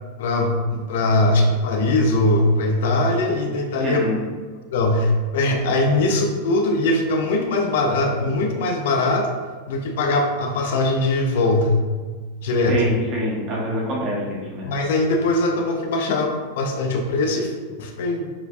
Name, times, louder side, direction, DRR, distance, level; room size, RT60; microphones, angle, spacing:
voice 1, 0.2-4.0 4.7-9.3 9.7-11.8 12.4-12.8 14.6-17.5 17.8-18.3, left 2 dB, 75° left, 2 dB, 0.6 m, -21 dB
voice 2, 3.8-4.2 12.7-14.7, equal, 35° right, -4 dB, 1.4 m, -25 dB
7.0 x 2.6 x 2.3 m, 1.4 s
supercardioid pair, 145°, 0 cm